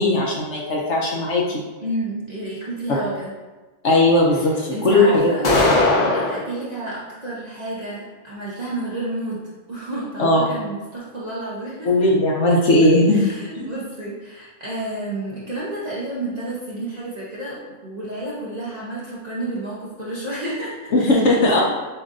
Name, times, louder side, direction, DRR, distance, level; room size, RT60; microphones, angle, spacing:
voice 1, 0.0-1.6 3.8-5.8 10.2-10.5 11.8-13.2 13.6-13.7 20.9-21.6, left 2 dB, 60° left, -2 dB, 1.0 m, -18 dB
voice 2, 1.8-3.3 4.3-4.5 4.7-5.5 6.1-9.4 9.7-12.1 13.1-21.6, right 1 dB, 35° right, -7 dB, 0.9 m, -30 dB
sound 1, 5.4-6.5, left 2 dB, 45° left, 0.6 m, -18 dB
7.2 x 2.6 x 2.5 m, 1.2 s
omnidirectional pair, 1.5 m